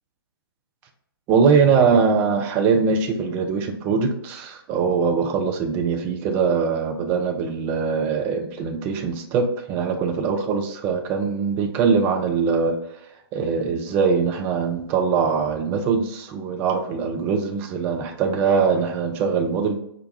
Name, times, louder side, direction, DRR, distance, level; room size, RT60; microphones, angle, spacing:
voice 1, 1.3-12.8 13.3-19.8, right 5 dB, 15° right, 5 dB, 0.3 m, -22 dB
4.8 x 2.2 x 2.7 m, 0.73 s
figure-of-eight pair, 130°, 13 cm